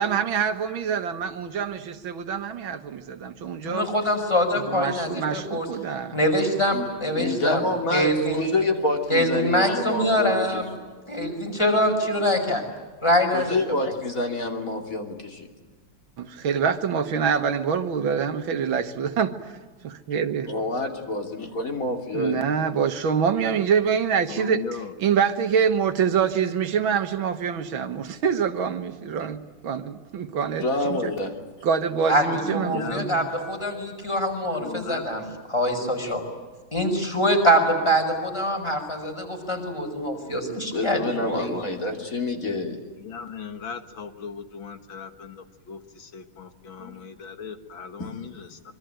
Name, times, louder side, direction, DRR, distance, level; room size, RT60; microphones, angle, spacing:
voice 1, 0.0-3.9 4.6-6.2 16.2-19.3 19.8-20.5 22.1-31.1 31.6-33.2, right 7 dB, 65° right, 9 dB, 2.0 m, -25 dB
voice 2, 3.6-5.7 6.1-7.7 7.9-8.4 9.1-10.7 11.1-12.6 13.0-13.6 32.1-36.2 36.7-41.5, equal, 10° left, 3 dB, 5.3 m, -24 dB
voice 3, 7.2-10.4 10.8-10.9 13.3-15.5 20.5-22.4 30.6-31.3 36.0-36.1 40.7-42.8 46.8-46.9 48.0-48.1, left 2 dB, 40° left, 4 dB, 3.2 m, -27 dB
voice 4, 24.3-24.9 32.5-33.1 34.6-35.1 43.0-48.3, left 6 dB, 65° left, 8 dB, 2.3 m, -37 dB
25.5 x 24.0 x 9.0 m, 1.4 s
omnidirectional pair, 2.4 m